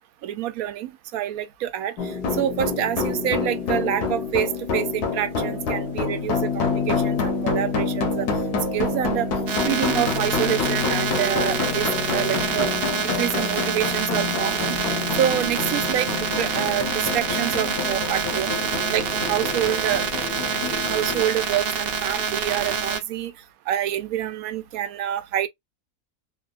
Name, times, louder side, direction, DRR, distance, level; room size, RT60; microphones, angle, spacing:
voice 1, 0.2-8.3 8.7-9.3 9.7-14.8 15.2-18.6 18.9-20.1 20.9-23.3 23.7-25.5, right 11 dB, 75° right, 1.0 m, -27 dB
sound 1, 2.0-21.2, left 4 dB, 85° left, 1.4 m, -27 dB
sound 2, 9.5-23.0, right 6 dB, 55° right, 0.7 m, -27 dB
3.3 x 2.2 x 2.3 m
omnidirectional pair, 1.7 m